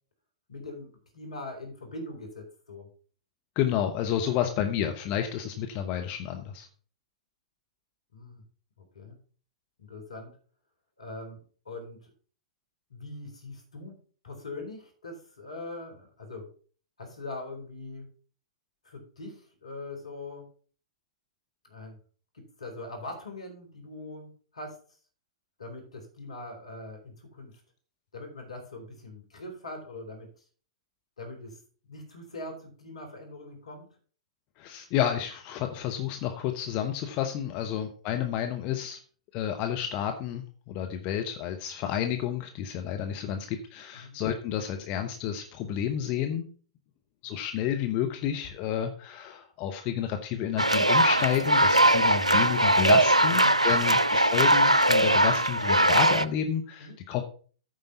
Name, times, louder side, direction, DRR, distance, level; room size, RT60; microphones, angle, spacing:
voice 1, 0.5-2.9 4.2-4.4 8.1-8.4 8.9-9.2 9.8-10.3 11.0-11.4 11.7-12.1 12.9-14.0 14.2-16.5 17.0-18.1 18.8-20.5 21.6-22.0 22.3-24.8 25.6-27.5 28.1-30.3 31.2-31.6 31.8-33.9 37.6-37.8 43.9-44.1 53.2-53.4 56.8-57.0, left 2 dB, 70° left, 2 dB, 3.7 m, -42 dB
voice 2, 3.6-6.7 34.6-39.0 39.3-46.4 47.2-57.2, left 10 dB, 35° left, 5 dB, 1.0 m, -30 dB
sound 1, 50.6-56.2, right 1 dB, 85° right, 0.5 m, -21 dB
9.0 x 5.4 x 5.7 m, 0.41 s
figure-of-eight pair, 105°, 3 cm